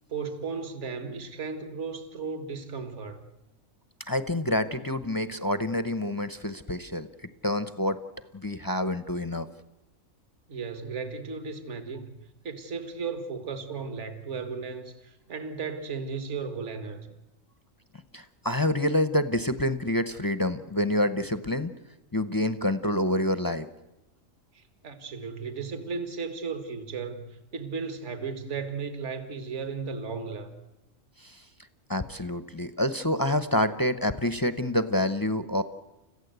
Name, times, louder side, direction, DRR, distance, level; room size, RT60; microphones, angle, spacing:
voice 1, 0.1-3.2 10.5-12.2 12.4-17.1 24.5-30.5, right 5 dB, 60° right, 9 dB, 2.0 m, -35 dB
voice 2, 4.1-7.1 7.4-8.0 8.3-9.5 18.1-21.7 22.1-23.7 31.2-31.4 31.9-35.6, left 1 dB, 20° left, 12 dB, 0.6 m, -27 dB
30.0 x 15.0 x 8.1 m, 1.0 s
omnidirectional pair, 1.4 m